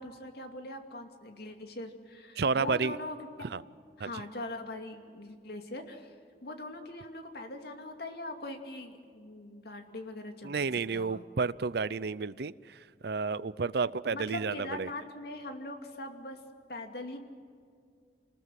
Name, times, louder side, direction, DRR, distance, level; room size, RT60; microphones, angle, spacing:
voice 1, 0.0-3.2 4.0-6.1 6.4-11.2 14.1-16.4 16.7-17.2, left 1 dB, 60° left, 5 dB, 2.6 m, -41 dB
voice 2, 2.4-2.9 3.4-3.6 4.0-4.1 10.4-14.9, right 4 dB, 60° right, 18 dB, 0.6 m, -31 dB
26.5 x 20.0 x 7.7 m, 2.2 s
head